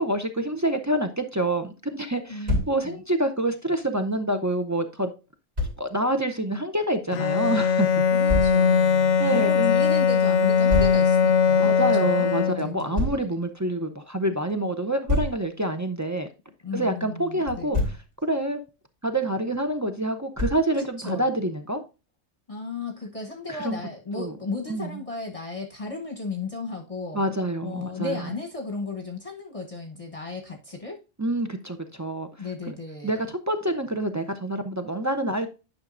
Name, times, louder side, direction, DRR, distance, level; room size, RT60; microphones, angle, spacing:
voice 1, 0.0-5.1 5.8-8.0 9.2-9.8 11.6-16.3 16.7-17.9 18.2-18.6 19.0-21.8 23.5-23.8 24.2-24.4 24.7-25.0 27.1-28.3 31.2-32.5 33.0-35.5, right 1 dB, 25° right, 0.4 m, -27 dB
voice 2, 2.3-3.0 8.1-11.7 12.0-13.3 16.6-17.7 20.8-21.3 22.5-27.2 27.6-31.0 32.4-33.2, left 3 dB, 30° left, 1.0 m, -35 dB
Thump thud, 2.5-2.8 5.6-5.8 8.3-8.6 10.7-11.0 12.9-13.2 15.1-15.4 17.5-18.0 20.4-20.7, left 2 dB, 60° right, 3.0 m, -25 dB
Bowed string instrument, 7.1-12.9, left 6 dB, 80° left, 0.9 m, -20 dB
9.7 x 5.7 x 2.5 m
omnidirectional pair, 1.2 m